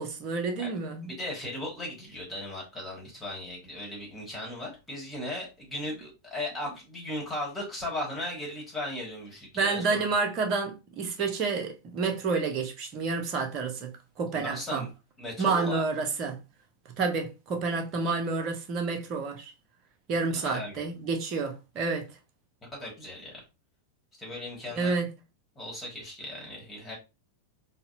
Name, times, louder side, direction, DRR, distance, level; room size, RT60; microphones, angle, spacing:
voice 1, 0.0-1.1 9.5-14.8 15.4-16.4 17.0-19.5 20.1-22.1 24.7-25.1, right 4 dB, 35° right, 0.7 m, -29 dB
voice 2, 1.2-10.1 14.3-14.9 15.2-15.8 20.3-20.8 22.6-23.4 24.2-24.9 25.5-27.0, left 1 dB, 15° left, 1.4 m, -37 dB
4.0 x 2.1 x 2.5 m
figure-of-eight pair, 90°, 0 cm